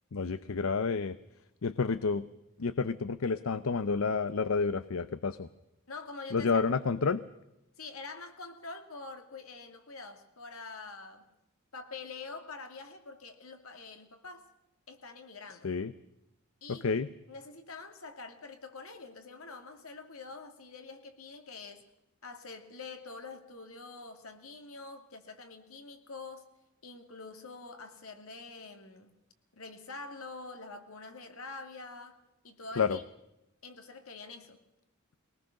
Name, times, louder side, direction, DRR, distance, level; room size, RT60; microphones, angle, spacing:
voice 1, 0.1-1.2 1.6-2.3 2.6-5.5 6.3-7.2 15.6-15.9 16.7-17.1 32.8-33.0, left 4 dB, 75° left, 14 dB, 0.6 m, -30 dB
voice 2, 5.9-6.6 7.8-11.2 11.7-14.4 14.9-15.7 16.6-16.9 17.3-21.8 22.2-26.5 26.8-29.2 29.5-32.2 32.4-33.0 33.6-34.6, left 3 dB, 90° left, 6 dB, 2.5 m, -46 dB
22.0 x 19.5 x 6.5 m, 0.90 s
head